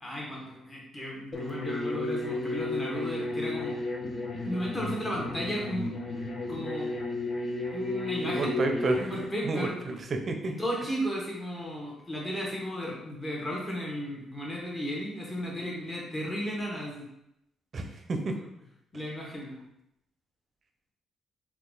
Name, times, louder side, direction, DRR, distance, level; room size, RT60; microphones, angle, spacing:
voice 1, 0.0-3.8 4.4-6.2 6.5-6.9 7.7-8.6 9.0-9.7 10.4-17.1 18.3-18.4 18.9-19.6, equal, 25° left, -3 dB, 1.1 m, -34 dB
sound 1, 1.3-9.2, left 2 dB, 45° left, 0.6 m, -33 dB
voice 2, 8.2-9.1 9.4-10.5 17.7-18.3, right 3 dB, 45° right, 4 dB, 0.5 m, -30 dB
2.8 x 2.4 x 3.8 m, 0.82 s
cardioid pair, 90°, 0 cm